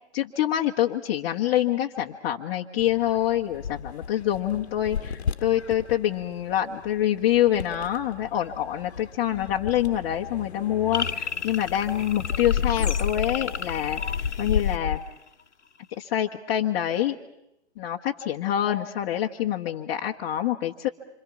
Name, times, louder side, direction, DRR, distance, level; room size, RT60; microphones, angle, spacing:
voice 1, 0.1-14.0 14.4-15.0 16.0-17.1 17.8-20.9, left 12 dB, 25° left, -2 dB, 1.1 m, -26 dB
sound 1, 2.8-15.0, left 7 dB, 70° left, 1.2 m, -33 dB
sound 2, 10.9-15.4, left 6 dB, 85° left, 1.1 m, -34 dB
27.0 x 26.5 x 6.1 m, 0.83 s
figure-of-eight pair, 140°, 34 cm